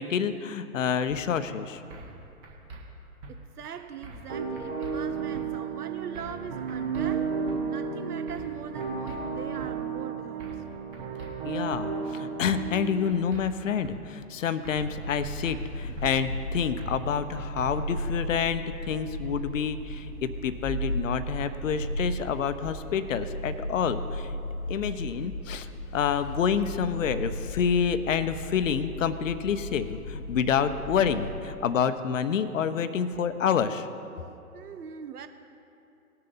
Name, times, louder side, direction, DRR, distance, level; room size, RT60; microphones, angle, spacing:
voice 1, 0.0-1.8 11.4-24.4 24.7-25.7 25.9-33.9, left 7 dB, 55° left, 0.8 m, -28 dB
sound 1, 1.1-1.2 1.9-2.2 2.4-2.8 3.2-3.3 4.0-4.3 4.6-4.9 5.3-5.5 6.1-6.4 6.7-7.1 7.5-7.6 8.3-8.5 8.8-9.2 9.6-9.7 10.4-10.7 10.9-11.3 11.7-11.8 12.5-12.8 13.1-13.4 13.8-14.0 14.6-14.9 15.2-15.6 16.0-16.1 16.8-17.0 17.3-17.7, right 2 dB, 25° right, 1.3 m, -44 dB
voice 2, 3.3-10.6 34.5-35.3, right 7 dB, 80° right, 0.8 m, -41 dB
sound 2, 4.3-13.2, right 6 dB, 45° right, 1.4 m, -33 dB
sound 3, 14.8-31.4, equal, 5° right, 1.5 m, -36 dB
19.0 x 6.8 x 4.1 m
hypercardioid pair, 140°, 45 cm